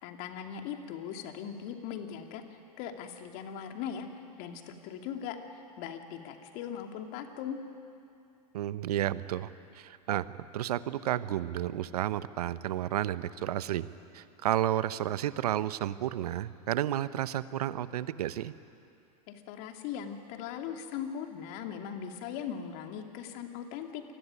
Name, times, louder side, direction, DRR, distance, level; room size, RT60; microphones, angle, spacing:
voice 1, 0.0-4.1 4.4-7.6 19.3-24.0, left 8 dB, 50° left, 4 dB, 2.8 m, -39 dB
voice 2, 8.5-10.3 10.5-13.9 14.1-18.5, right 12 dB, 70° right, 15 dB, 1.0 m, -31 dB
27.0 x 20.0 x 9.8 m, 2.5 s
hypercardioid pair, 95°, 20 cm